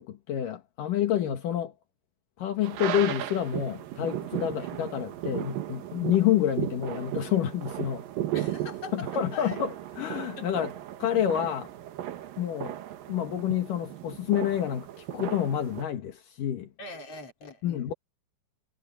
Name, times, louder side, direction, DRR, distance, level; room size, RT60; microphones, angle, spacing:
voice 1, 0.0-1.7 2.4-8.0 8.9-10.7 11.0-11.7 12.4-12.7 13.1-16.7 17.6-17.9, left 10 dB, 75° left, 3.2 m, -28 dB
sound 1, 2.6-15.8, right 13 dB, 85° right, 3.0 m, -36 dB
voice 2, 8.3-9.6 10.4-10.6 16.8-17.9, left 3 dB, 45° left, 4.6 m, -42 dB
omnidirectional pair, 3.9 m